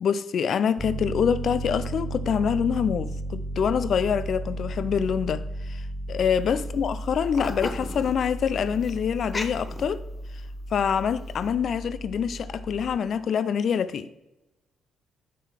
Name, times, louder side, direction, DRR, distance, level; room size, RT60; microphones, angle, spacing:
voice 1, 0.0-10.0 10.7-14.1, left 7 dB, 60° left, 0.5 m, -26 dB
Piano, 0.8-13.0, right 1 dB, 35° right, 2.8 m, -34 dB
sound 1, 6.3-6.5 6.8-10.5 11.0-11.5, left 3 dB, 25° left, 0.8 m, -37 dB
9.2 x 3.9 x 6.3 m
cardioid pair, 90°, 0 cm